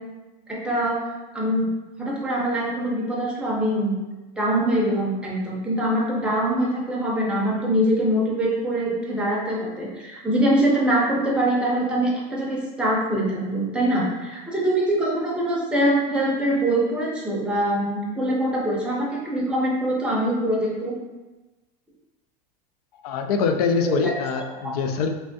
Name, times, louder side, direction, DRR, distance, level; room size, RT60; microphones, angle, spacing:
voice 1, 0.5-1.0 1.3-1.7 2.0-3.9 4.4-21.0 23.8-24.1, right 1 dB, 5° right, -5 dB, 0.6 m, -23 dB
voice 2, 23.0-25.1, left 5 dB, 85° left, 6 dB, 0.4 m, -24 dB
3.3 x 3.3 x 2.6 m, 1.1 s
supercardioid pair, 160°, 19 cm